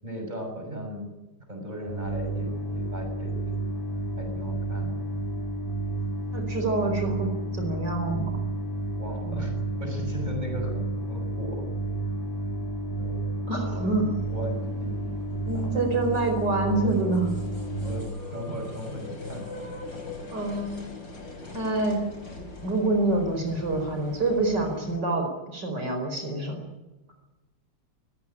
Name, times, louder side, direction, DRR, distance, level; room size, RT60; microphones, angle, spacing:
voice 1, 0.0-1.1 1.5-3.5 4.2-5.0 8.9-9.5 9.8-11.7 13.0-13.2 13.6-13.9 14.2-15.8 17.8-18.1 18.3-19.7, equal, 20° right, 3 dB, 6.7 m, -37 dB
sound 1, 1.9-18.0, right 2 dB, 10° left, 6.5 m, -31 dB
voice 2, 6.3-8.3 9.3-9.4 13.5-14.1 15.5-17.3 20.3-20.8 21.5-22.0 22.4-25.3 25.5-26.6, right 2 dB, 70° right, 4 dB, 5.3 m, -26 dB
sound 2, 13.8-25.0, left 2 dB, 90° left, 5.7 m, -42 dB
24.0 x 16.5 x 9.8 m, 1.1 s
omnidirectional pair, 2.0 m